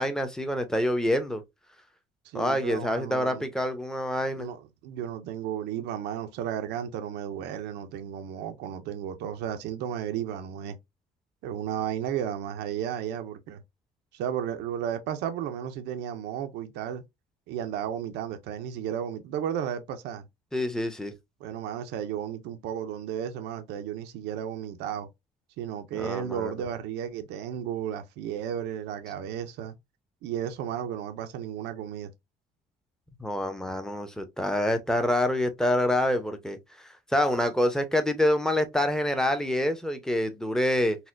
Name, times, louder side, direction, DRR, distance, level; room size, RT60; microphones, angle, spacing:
voice 1, 0.0-1.4 2.3-4.5 20.5-21.1 25.9-26.5 33.2-36.6 37.1-41.0, left 1 dB, 5° left, 0.7 m, -26 dB
voice 2, 2.2-3.5 4.4-10.8 11.4-13.6 14.1-17.0 17.5-20.3 21.4-25.1 25.6-29.7 30.2-32.1, right 9 dB, 90° right, 0.5 m, -33 dB
4.0 x 2.2 x 2.5 m
cardioid pair, 110°, 17 cm